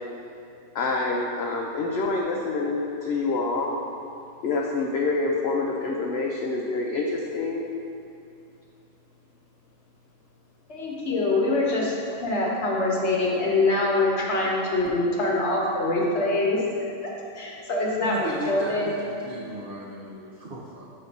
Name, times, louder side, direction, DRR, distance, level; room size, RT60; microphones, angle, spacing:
voice 1, 0.7-3.7 4.4-7.6, left 3 dB, 70° left, -1 dB, 0.6 m, -26 dB
voice 2, 10.7-16.6 17.0-18.9, left 2 dB, 55° left, -3 dB, 1.1 m, -24 dB
voice 3, 18.0-20.9, right 1 dB, 70° right, -2 dB, 0.5 m, -36 dB
6.9 x 3.2 x 5.2 m, 2.6 s
omnidirectional pair, 1.6 m